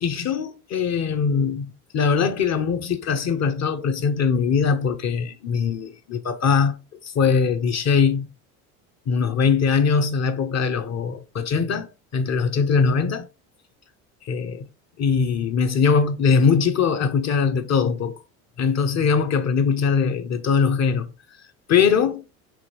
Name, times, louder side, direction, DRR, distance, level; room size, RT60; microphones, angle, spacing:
voice 1, 0.0-6.7 7.0-8.3 9.1-13.3 14.2-14.6 15.0-18.1 18.6-21.1 21.7-22.2, left 6 dB, 40° left, 1.0 m, -21 dB
4.9 x 3.5 x 3.1 m
hypercardioid pair, 80°, 41 cm